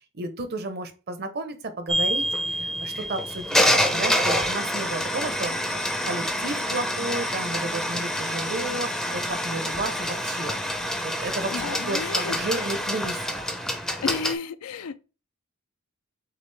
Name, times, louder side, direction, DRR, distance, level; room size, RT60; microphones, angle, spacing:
voice 1, 0.1-3.6 3.9-5.7 6.0-10.6 11.0-13.2, right 2 dB, 45° right, 0.7 m, -32 dB
sound 1, 1.9-14.3, equal, ahead, 0.5 m, -27 dB
voice 2, 11.5-12.7 14.0-15.0, left 5 dB, 80° left, 0.4 m, -32 dB
6.6 x 2.4 x 3.3 m
head